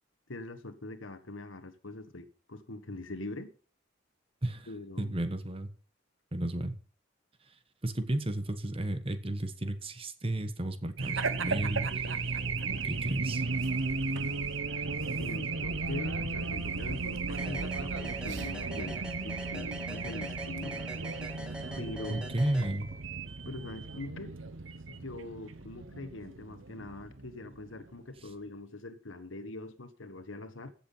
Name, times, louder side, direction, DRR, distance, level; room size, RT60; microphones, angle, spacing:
voice 1, 0.3-3.5 4.7-5.2 15.2-20.8 21.8-22.2 23.5-24.4 24.9-30.7, left 2 dB, 85° left, 1.5 m, -43 dB
voice 2, 5.0-5.7 6.3-6.8 7.8-12.1 12.5-13.4 22.1-22.9, right 1 dB, 30° right, 1.3 m, -33 dB
Race car auto racing / Alarm, 11.0-27.9, right 4 dB, 90° right, 1.2 m, -35 dB
sound 1, 17.4-23.2, equal, 5° right, 2.0 m, -44 dB
15.0 x 7.6 x 5.6 m
head